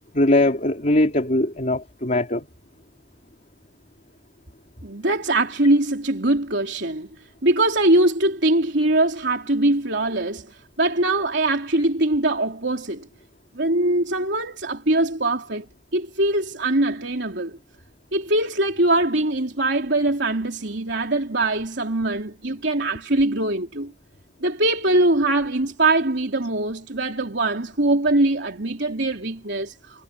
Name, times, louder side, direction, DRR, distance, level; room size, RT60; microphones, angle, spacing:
voice 1, 0.1-2.5, left 1 dB, 45° left, 3.0 m, -20 dB
voice 2, 4.8-7.1 7.4-13.1 13.6-15.7 15.9-17.6 18.1-23.9 24.4-30.0, right 2 dB, 65° right, 3.6 m, -22 dB
head